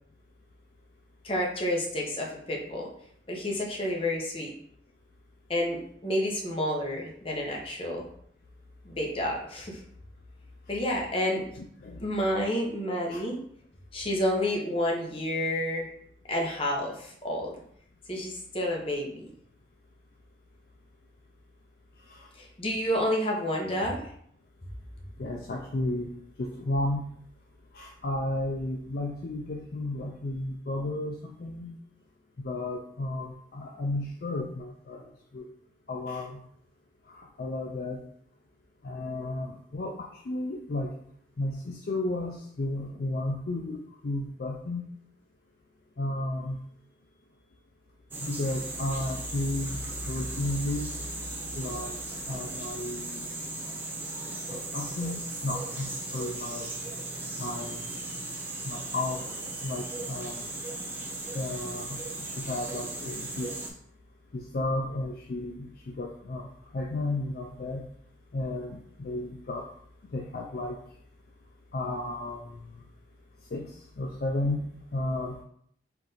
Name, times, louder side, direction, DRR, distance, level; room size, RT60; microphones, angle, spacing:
voice 1, 1.2-2.9 3.3-4.5 5.5-8.1 8.8-9.8 10.7-11.4 12.0-13.4 13.9-15.9 16.3-17.6 18.1-19.3 22.4-24.0, left 1 dB, 30° left, -1 dB, 0.9 m, -29 dB
voice 2, 25.2-26.1 26.4-27.1 27.7-31.8 32.4-35.5 35.9-36.4 37.1-38.0 38.8-40.9 41.4-44.8 46.0-46.6 48.2-50.9 51.5-52.0 52.3-53.3 54.5-56.7 57.4-58.0 58.6-59.3 59.6-60.4 61.3-63.7 64.3-66.5 66.7-67.8 68.3-69.7 70.1-70.8 71.7-72.6 73.5-74.7 74.9-75.4, left 2 dB, 50° left, 0 dB, 0.4 m, -33 dB
sound 1, 48.1-63.7, right 2 dB, 10° right, 0.5 m, -37 dB
4.5 x 2.6 x 3.9 m, 0.65 s
head